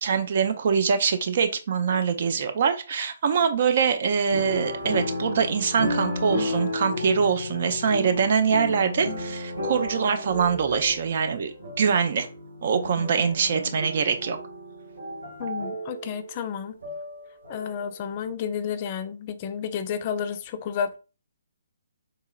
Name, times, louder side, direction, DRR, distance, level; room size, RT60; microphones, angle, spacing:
voice 1, 0.0-12.3 12.6-14.4, right 6 dB, 45° right, 8 dB, 0.4 m, -24 dB
sound 1, 4.3-17.9 18.2-18.3, left 1 dB, 65° right, 1.3 m, -33 dB
voice 2, 15.4-16.7 17.5-21.0, left 7 dB, 30° left, 10 dB, 0.3 m, -31 dB
3.8 x 2.8 x 2.3 m, 0.32 s
figure-of-eight pair, 135°, 0 cm